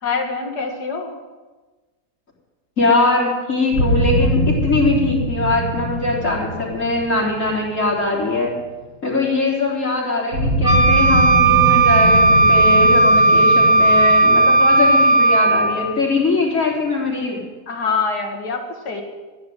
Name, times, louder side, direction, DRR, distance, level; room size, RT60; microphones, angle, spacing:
voice 1, 0.0-1.1 17.7-19.0, left 5 dB, 75° left, 3 dB, 2.6 m, -24 dB
voice 2, 2.8-8.5 9.0-17.4, left 2 dB, 50° left, -3 dB, 4.1 m, -21 dB
sound 1, 3.7-8.7 10.3-16.0, equal, 60° right, 5.1 m, -23 dB
Wind instrument woodwind instrument, 10.6-15.8, right 2 dB, 40° right, 4.7 m, -14 dB
14.5 x 10.5 x 7.7 m, 1.3 s
omnidirectional pair, 1.7 m